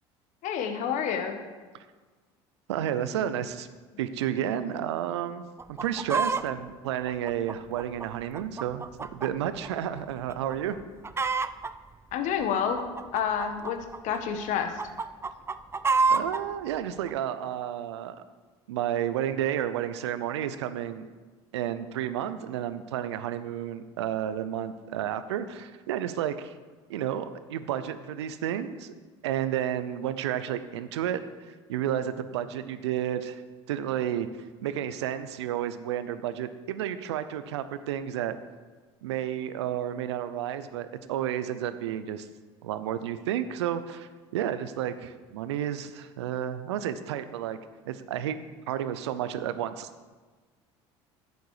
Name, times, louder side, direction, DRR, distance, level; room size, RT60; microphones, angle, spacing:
voice 1, 0.4-1.4 12.1-13.8 14.0-14.7, left 7 dB, 60° left, 7 dB, 1.3 m, -29 dB
voice 2, 2.7-3.7 4.0-10.8 16.1-18.2 18.7-21.1 21.5-26.5 26.9-28.9 29.2-31.2 31.5-33.4 33.7-34.3 34.6-38.4 39.0-42.3 42.6-47.6 47.9-48.4 48.7-49.9, right 10 dB, 85° right, 12 dB, 0.6 m, -31 dB
Chicken rooster, 5.6-6.5 7.1-9.3 9.6-9.7 10.3-10.6 10.8-11.7 12.4-14.2 14.6-16.4 17.1-17.2, right 4 dB, 20° right, 0.5 m, -28 dB
10.5 x 8.1 x 4.8 m, 1.4 s
hypercardioid pair, 75°, 14 cm